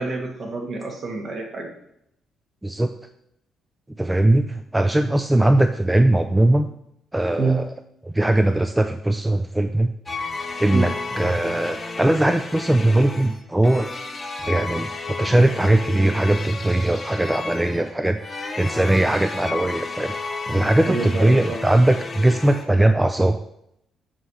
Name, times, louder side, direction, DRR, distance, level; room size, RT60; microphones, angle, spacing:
voice 1, 0.0-1.7 7.4-7.6 10.7-10.9 20.9-21.6, right 3 dB, 50° right, 1 dB, 1.8 m, -26 dB
voice 2, 2.6-2.9 4.0-6.7 7.1-7.7 8.0-9.9 10.6-13.9 14.5-18.2 18.6-20.1 20.5-23.4, right 1 dB, 10° right, 7 dB, 0.4 m, -20 dB
sound 1, 10.1-22.7, left 3 dB, 30° left, 1.0 m, -32 dB
7.4 x 3.3 x 5.6 m, 0.75 s
cardioid pair, 90°, 0 cm